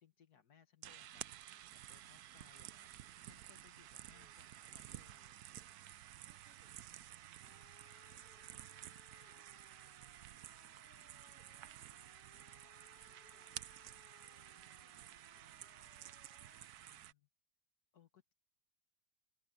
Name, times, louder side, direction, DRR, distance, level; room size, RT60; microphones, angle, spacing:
voice 1, 0.0-1.2 1.7-2.9 3.2-5.4 16.8-17.3 17.9-18.3, left 8 dB, 80° left, 2.1 m, -68 dB
sound 1, 0.8-17.1, right 12 dB, 80° right, 1.2 m, -53 dB
voice 2, 6.2-10.0 10.8-16.2, right 1 dB, 40° right, 4.7 m, -77 dB
sound 2, 7.4-16.7, left 7 dB, 60° left, 1.7 m, -69 dB
open air
omnidirectional pair, 1.6 m